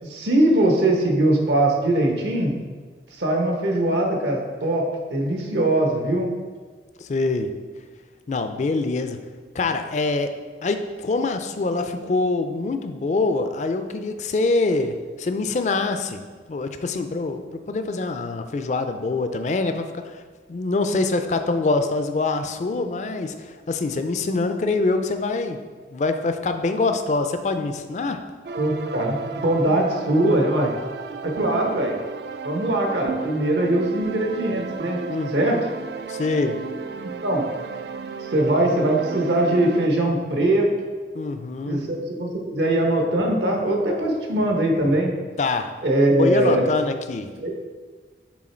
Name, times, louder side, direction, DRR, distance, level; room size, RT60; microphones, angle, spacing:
voice 1, 0.0-2.5 3.1-4.8 5.1-6.3 28.5-30.7 31.2-31.9 32.4-35.0 35.3-35.6 37.0-37.4 38.3-40.7 41.7-45.1 45.8-46.6 47.4-47.5, right 1 dB, 80° right, 1 dB, 1.0 m, -21 dB
voice 2, 7.0-7.5 8.3-9.2 9.5-10.3 10.6-16.2 16.5-20.2 20.5-25.6 25.9-28.2 35.1-35.6 36.1-36.6 41.1-41.8 45.4-45.7 46.2-47.3, left 3 dB, 40° left, 8 dB, 0.4 m, -24 dB
sound 1, 28.5-39.9, right 5 dB, 65° right, 0.3 m, -34 dB
6.3 x 3.8 x 4.3 m, 1.5 s
head